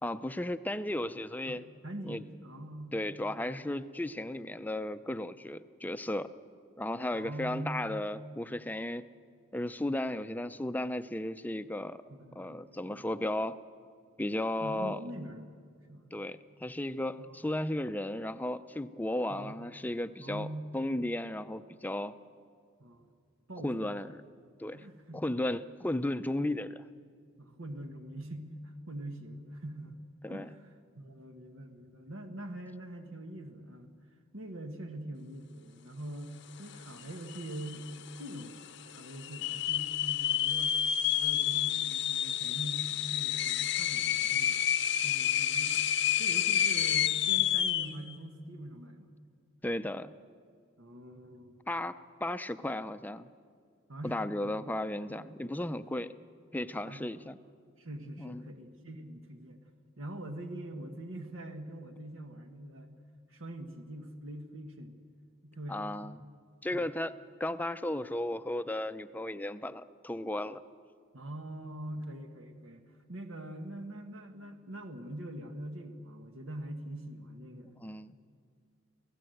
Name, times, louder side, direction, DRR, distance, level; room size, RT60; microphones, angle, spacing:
voice 1, 0.0-1.6 2.1-2.2 2.9-6.3 6.8-9.0 9.5-12.0 12.4-13.6 14.2-15.0 16.1-22.1 23.6-24.2 24.6-24.8 25.1-26.9 30.2-30.5 49.6-50.1 51.7-51.9 52.2-53.3 54.0-56.1 56.5-57.4 58.2-58.4 65.7-66.2 66.6-67.1 67.4-70.6 77.8-78.2, left 1 dB, 10° left, 12 dB, 0.5 m, -35 dB
voice 2, 1.5-3.0 3.3-3.8 7.1-8.0 12.1-13.0 14.6-15.5 15.9-16.1 17.2-17.3 19.3-19.7 20.2-20.7 22.8-23.1 23.5-23.9 24.7-25.3 27.4-30.0 30.3-33.9 34.3-38.5 38.9-40.8 41.2-44.6 45.0-45.8 46.2-49.1 50.8-51.6 53.9-54.5 56.7-57.3 57.8-59.6 60.0-63.0 63.3-64.9 65.4-66.1 66.7-66.9 71.1-77.8, right 1 dB, 80° right, 5 dB, 1.6 m, -43 dB
sound 1, 37.0-37.1 37.3-37.9 38.4-38.5 39.2-47.9, left 10 dB, 60° left, 0.7 m, -29 dB
29.0 x 16.0 x 7.9 m, 2.1 s
head